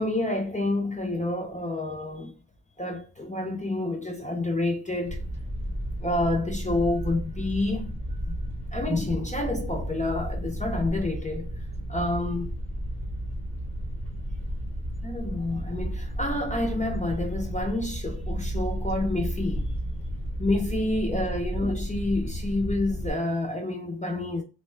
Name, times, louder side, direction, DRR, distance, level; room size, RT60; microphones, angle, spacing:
voice 1, 0.0-2.3 2.8-5.2 6.0-7.9 8.3-8.4 8.7-11.5 11.9-12.5 15.0-19.8 20.4-24.4, left 2 dB, 15° left, 0.5 m, -28 dB
sound 1, 5.1-23.1, equal, 15° right, 0.8 m, -33 dB
2.8 x 2.2 x 3.1 m
wide cardioid pair, 140°, 45 cm